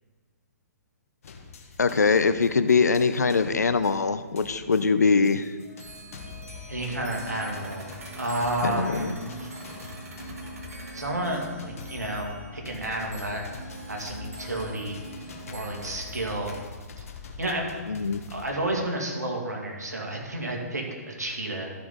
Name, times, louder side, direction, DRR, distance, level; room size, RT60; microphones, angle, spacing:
sound 1, 1.2-18.5, left 5 dB, 55° left, 1.2 m, -44 dB
voice 1, 1.8-5.5 8.6-9.2 17.9-18.2, left 4 dB, 75° left, 11 dB, 0.6 m, -22 dB
sound 2, 2.3-4.3 4.6-4.7 5.2-5.3 5.6-16.6, right 3 dB, 60° right, 1.8 m, -44 dB
voice 2, 6.7-9.1 10.9-13.5 13.9-15.0 15.5-16.6 17.0-17.1 17.4-17.7 18.3-21.7, right 1 dB, 80° right, 0 dB, 2.1 m, -31 dB
13.0 x 5.9 x 3.9 m, 1.4 s
figure-of-eight pair, 120°, 9 cm